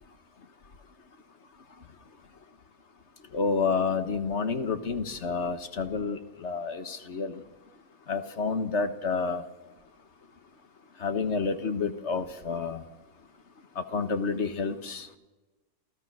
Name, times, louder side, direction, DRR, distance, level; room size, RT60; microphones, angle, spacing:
voice 1, 3.3-7.4 8.1-9.4 11.0-12.8 13.8-15.1, left 4 dB, 50° left, 10 dB, 1.5 m, -29 dB
28.0 x 16.0 x 6.2 m, 1.1 s
omnidirectional pair, 1.6 m